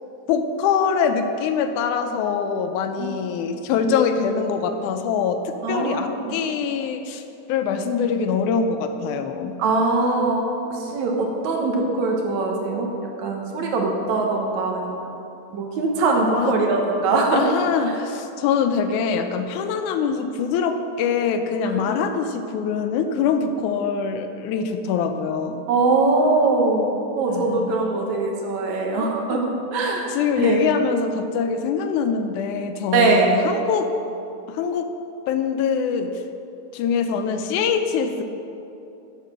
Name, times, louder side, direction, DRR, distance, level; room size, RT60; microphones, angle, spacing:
voice 1, 0.3-7.2 7.5-9.5 16.3-16.5 17.3-25.7 27.3-27.8 28.9-29.4 30.1-33.9 34.5-34.9 35.3-36.1 36.7-38.2, left 6 dB, 80° left, 7 dB, 2.1 m, -24 dB
voice 2, 5.6-6.3 9.6-10.4 10.7-12.9 13.2-15.1 15.5-17.4 21.6-22.1 25.7-26.9 27.2-30.1 30.4-30.6 32.9-33.3, right 3 dB, 70° right, 1 dB, 2.4 m, -22 dB
11.0 x 6.7 x 6.1 m, 2.8 s
omnidirectional pair, 3.6 m